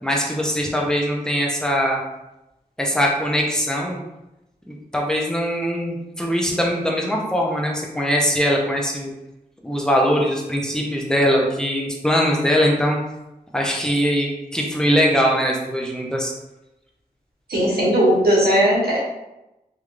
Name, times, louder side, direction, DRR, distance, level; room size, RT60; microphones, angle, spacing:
voice 1, 0.0-2.0 2.8-4.0 4.7-9.1 9.6-13.0 13.5-16.3, equal, 5° left, -2 dB, 0.8 m, -21 dB
voice 2, 17.5-19.0, right 1 dB, 85° right, -5 dB, 1.1 m, -17 dB
3.4 x 3.0 x 2.5 m, 0.95 s
cardioid pair, 45°, 16 cm